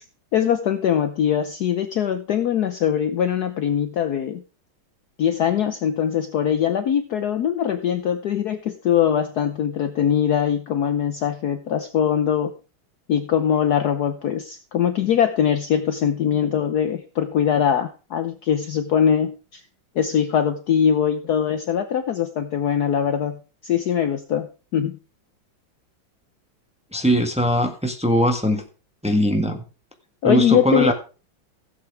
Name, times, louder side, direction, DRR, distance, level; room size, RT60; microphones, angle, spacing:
voice 1, 0.3-4.4 5.2-12.5 13.1-19.6 19.9-24.5 24.7-25.0 30.2-30.9, left 9 dB, 65° left, 9 dB, 1.1 m, -22 dB
voice 2, 26.9-28.6 29.0-29.6 30.2-30.9, equal, 5° right, 4 dB, 1.3 m, -20 dB
16.0 x 7.9 x 3.3 m, 0.34 s
omnidirectional pair, 2.2 m